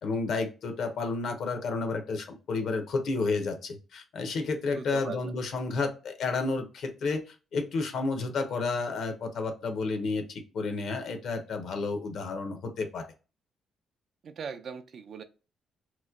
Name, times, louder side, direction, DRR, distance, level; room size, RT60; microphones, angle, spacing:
voice 1, 0.0-13.1, left 3 dB, 70° left, 6 dB, 0.8 m, -31 dB
voice 2, 4.7-5.3 14.2-15.2, right 6 dB, 60° right, 9 dB, 0.4 m, -39 dB
3.0 x 2.2 x 3.6 m, 0.32 s
cardioid pair, 90°, 0 cm